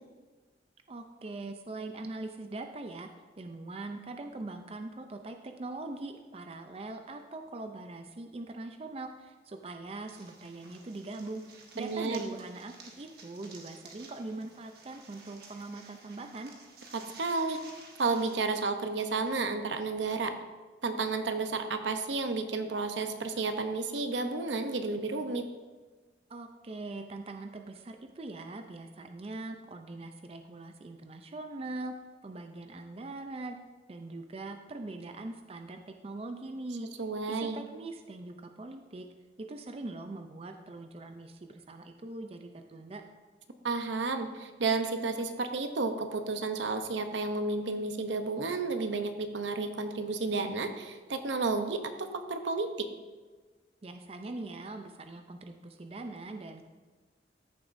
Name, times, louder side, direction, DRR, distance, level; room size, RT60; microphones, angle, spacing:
voice 1, 0.9-3.1 3.4-11.4 11.7-16.5 26.3-31.9 32.2-33.6 33.9-36.9 37.3-39.1 39.4-43.0 53.8-56.7, right 2 dB, 35° right, 6 dB, 0.5 m, -42 dB
sound 1, 10.1-18.5, right 4 dB, 55° right, 1.5 m, -54 dB
voice 2, 11.8-12.2 16.9-17.6 18.0-20.3 20.8-25.5 37.0-37.6 43.6-52.9, right 3 dB, 85° right, 7 dB, 0.8 m, -32 dB
14.0 x 7.1 x 2.6 m, 1.3 s
head